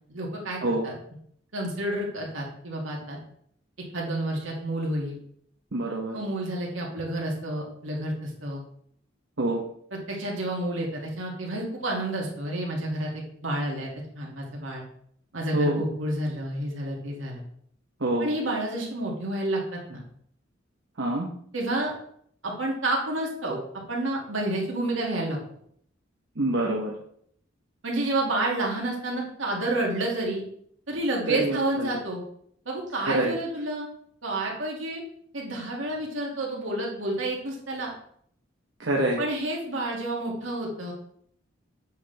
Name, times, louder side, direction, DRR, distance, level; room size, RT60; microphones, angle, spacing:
voice 1, 0.1-0.6 0.8-0.9 1.5-3.2 3.9-5.2 6.1-8.6 9.9-13.9 14.2-14.8 15.3-17.4 18.2-20.0 21.5-21.9 22.4-23.6 23.9-25.4 27.8-30.4 30.9-32.2 32.7-33.9 34.2-35.0 35.3-37.9 39.2-40.9, right 1 dB, 80° right, -2 dB, 2.4 m, -29 dB
voice 2, 5.7-6.2 9.4-9.6 15.5-15.8 18.0-18.3 21.0-21.3 26.4-26.9 31.3-32.0 33.0-33.3 38.8-39.2, right 1 dB, 65° right, -2 dB, 1.1 m, -26 dB
8.3 x 6.0 x 3.5 m, 0.65 s
head